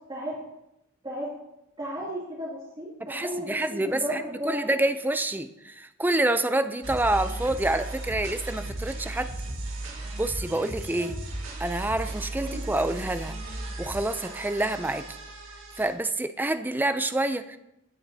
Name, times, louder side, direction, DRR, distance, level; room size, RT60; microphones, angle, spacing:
voice 1, 1.8-4.7 11.0-11.1 12.4-12.6, equal, 25° right, -9 dB, 2.5 m, -34 dB
voice 2, 3.1-9.3 10.2-11.1 11.6-13.4 13.8-15.0 15.8-17.6, right 2 dB, 10° right, 10 dB, 0.4 m, -27 dB
sound 1, 6.8-15.9, right 2 dB, 75° right, 2.6 m, -36 dB
17.0 x 7.2 x 2.7 m, 0.87 s
head